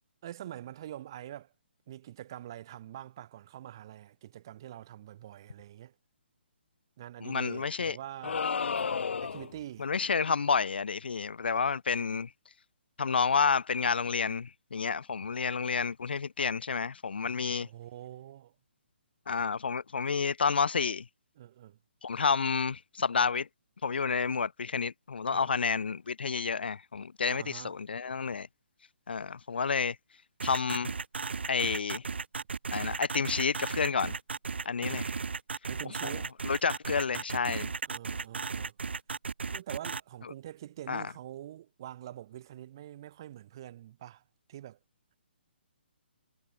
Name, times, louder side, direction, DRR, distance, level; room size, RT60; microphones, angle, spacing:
voice 1, 0.2-1.5 1.9-5.9 7.0-8.5 9.2-9.9 17.6-18.5 21.4-21.8 25.3-25.5 27.2-27.8 35.7-36.3 37.9-38.7 39.5-44.2 44.5-44.8, right 12 dB, 25° right, 1.4 m, -45 dB
voice 2, 7.2-8.0 9.8-12.3 13.0-17.7 19.3-21.0 22.0-23.5 23.8-28.5 29.1-30.0 30.4-30.9 31.5-32.0 32.7-34.1 34.6-35.1 36.4-37.7 40.9-41.0, left 5 dB, 60° left, 1.1 m, -30 dB
sound 1, 8.2-9.6, left 5 dB, 80° left, 0.5 m, -32 dB
sound 2, 30.4-40.0, right 5 dB, 75° right, 2.9 m, -35 dB
hypercardioid pair, 180°, 6 cm